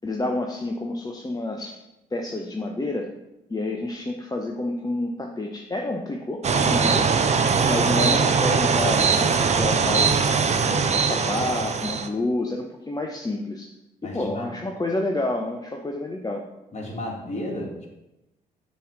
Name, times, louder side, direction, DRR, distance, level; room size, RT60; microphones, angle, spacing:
voice 1, 0.0-1.7 2.1-3.1 3.5-7.1 7.7-10.3 10.7-13.7 14.0-16.4, left 2 dB, 20° left, 1 dB, 0.7 m, -29 dB
sound 1, 6.4-12.1, right 5 dB, 35° right, 0.6 m, -21 dB
voice 2, 14.0-14.5 16.7-17.9, left 1 dB, 35° left, -2 dB, 2.1 m, -33 dB
7.0 x 3.1 x 4.9 m, 0.94 s
hypercardioid pair, 50°, 20 cm